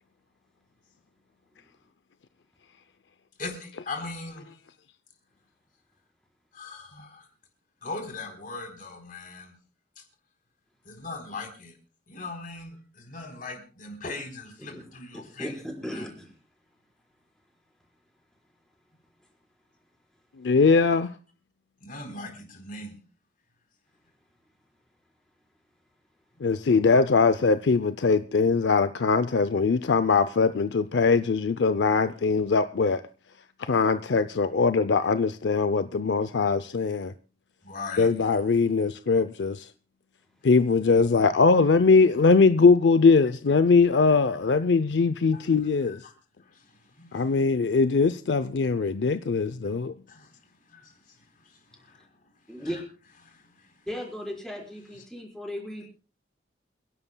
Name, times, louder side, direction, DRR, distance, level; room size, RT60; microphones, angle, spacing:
voice 1, 3.4-4.5 6.5-7.2 7.8-9.5 10.9-11.7 12.1-15.6 15.9-16.1 21.8-23.0 37.6-38.1 45.3-45.4 45.9-46.1 46.5-46.6 47.0-47.1 50.1-50.3 50.7-50.9 51.8-52.0 52.6-52.7 53.3-53.4, left 3 dB, 50° left, 3.8 m, -39 dB
voice 2, 15.1-16.3 52.5-52.9 53.9-55.9, equal, 5° left, 4.5 m, -36 dB
voice 3, 20.4-21.1 26.4-33.0 33.6-37.1 38.0-39.7 40.4-46.0 47.1-49.9, left 4 dB, 80° left, 0.5 m, -21 dB
29.0 x 11.0 x 2.2 m
head